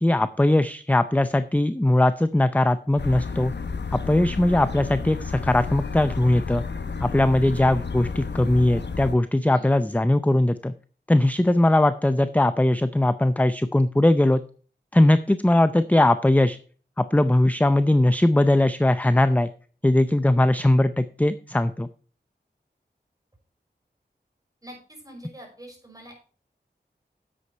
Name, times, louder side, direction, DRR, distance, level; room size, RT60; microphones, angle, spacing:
voice 1, 0.0-3.5 3.9-6.6 7.0-10.7 11.1-14.4 14.9-16.6 17.0-19.5 19.8-21.9, left 1 dB, 10° left, 12 dB, 0.5 m, -20 dB
sound 1, 3.0-9.1, left 5 dB, 75° left, 0.8 m, -31 dB
voice 2, 24.6-26.1, right 1 dB, 20° right, 1 dB, 5.5 m, -45 dB
9.8 x 8.2 x 4.5 m, 0.40 s
wide cardioid pair, 70°, 18 cm